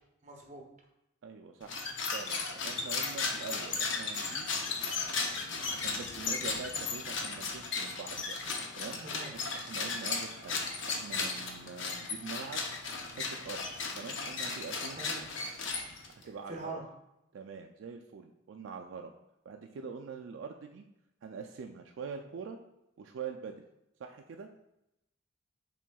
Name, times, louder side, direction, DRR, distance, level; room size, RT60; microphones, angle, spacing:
voice 1, 0.2-0.7 9.0-9.3 15.0-15.3 16.5-16.8, right 3 dB, 35° right, 0 dB, 0.8 m, -42 dB
voice 2, 1.2-4.5 5.7-8.4 8.8-9.1 9.5-10.6 10.8-12.6 13.1-13.6 13.9-15.0 16.2-16.7 17.3-19.1 19.5-20.8 21.2-22.6 23.0-23.6 24.0-24.5, right 5 dB, 75° right, 4 dB, 0.3 m, -44 dB
sound 1, 1.6-16.2, left 4 dB, 70° left, 0.6 m, -35 dB
6.0 x 3.7 x 2.3 m, 0.85 s
head